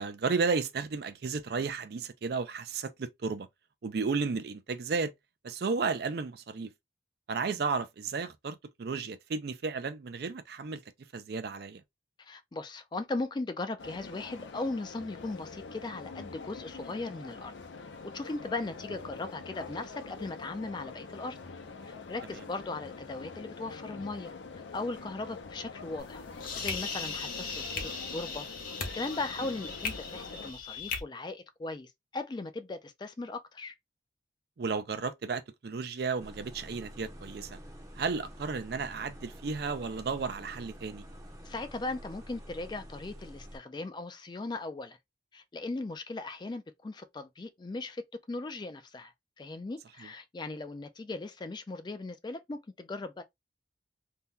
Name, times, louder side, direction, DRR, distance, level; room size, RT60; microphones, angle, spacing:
voice 1, 0.0-3.5 3.8-5.1 5.4-6.7 7.3-10.8 11.1-11.8 22.3-22.4 34.6-37.6 38.0-41.0 50.0-50.1, right 4 dB, 55° right, 0.4 m, -33 dB
voice 2, 12.2-17.5 18.1-21.4 21.8-24.3 24.7-26.2 26.6-28.5 28.9-33.7 41.4-45.0 45.3-48.0 48.3-53.2, left 2 dB, 25° left, 0.3 m, -38 dB
sound 1, 13.8-30.5, left 4 dB, 80° left, 0.6 m, -45 dB
sound 2, 26.0-31.0, left 4 dB, 50° left, 0.8 m, -38 dB
sound 3, 36.2-43.6, equal, 20° right, 0.7 m, -48 dB
2.8 x 2.2 x 3.5 m
head